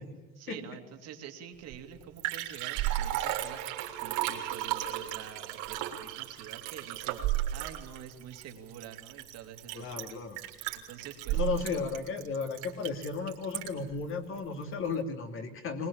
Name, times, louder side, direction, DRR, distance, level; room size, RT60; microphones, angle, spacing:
voice 1, 0.4-3.6 4.0-7.2 7.5-10.2 10.7-11.4, right 9 dB, 50° right, 5 dB, 2.6 m, -47 dB
Liquid, 1.7-1.8 2.0-13.9 14.4-14.5, right 14 dB, 70° right, 3.5 m, -34 dB
voice 2, 9.7-10.4 11.3-15.9, left 5 dB, 40° left, 5 dB, 2.9 m, -34 dB
22.0 x 20.5 x 8.7 m, 1.1 s
cardioid pair, 140°, 33 cm